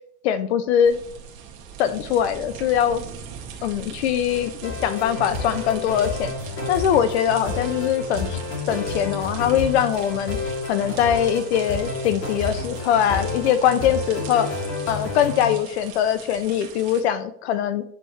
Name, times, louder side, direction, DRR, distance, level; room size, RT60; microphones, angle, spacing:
voice 1, 0.2-1.0 1.8-3.0 3.6-6.3 6.7-8.4 8.7-10.4 10.7-14.5 14.9-17.8, left 9 dB, 45° left, 13 dB, 0.5 m, -22 dB
sound 1, 0.8-17.0, right 7 dB, 55° right, 2.1 m, -41 dB
sound 2, 4.3-15.5, left 3 dB, 25° left, 2.6 m, -30 dB
10.0 x 6.7 x 3.1 m, 0.67 s
supercardioid pair, 165°, 47 cm